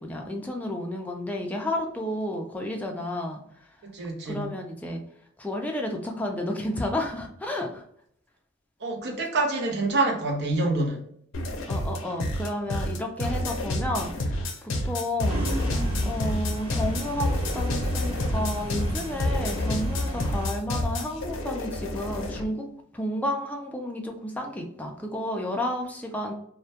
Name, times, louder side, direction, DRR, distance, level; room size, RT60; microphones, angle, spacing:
voice 1, 0.0-3.4 4.3-5.0 5.4-7.8 11.7-15.4 16.0-22.7 22.9-26.3, left 1 dB, 10° left, 1 dB, 0.3 m, -31 dB
voice 2, 3.8-4.5 8.8-11.0, right 2 dB, 55° right, 1 dB, 0.6 m, -26 dB
sound 1, 11.3-22.4, left 1 dB, 70° left, 0.5 m, -29 dB
sound 2, 15.3-20.5, equal, 25° right, 1.0 m, -34 dB
2.1 x 2.1 x 2.7 m, 0.67 s
head